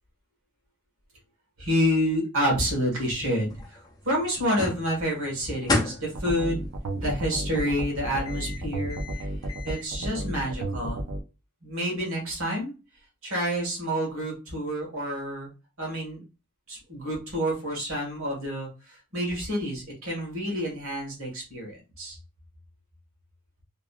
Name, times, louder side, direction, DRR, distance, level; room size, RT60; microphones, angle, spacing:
voice 1, 1.6-3.5 4.0-6.6 6.9-9.0 9.6-11.0 11.6-12.7 13.2-15.5 15.8-16.2 16.7-18.7 19.1-22.2, equal, 70° right, -1 dB, 1.5 m, -28 dB
sound 1, 3.1-9.9, left 2 dB, 20° left, 0.5 m, -35 dB
sound 2, 6.1-11.2, right 1 dB, 85° right, 0.5 m, -32 dB
3.0 x 2.4 x 2.3 m, 0.29 s
head